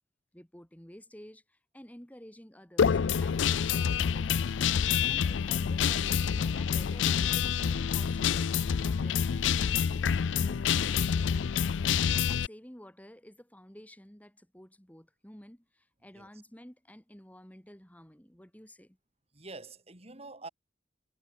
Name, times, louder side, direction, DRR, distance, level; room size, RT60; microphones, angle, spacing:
voice 1, 0.3-4.3 5.1-11.1 12.3-19.0, equal, 10° left, 2.3 m, -52 dB
Guitar, 2.8-12.5, left 7 dB, 80° left, 0.4 m, -27 dB
voice 2, 19.3-20.5, right 3 dB, 35° right, 4.1 m, -46 dB
head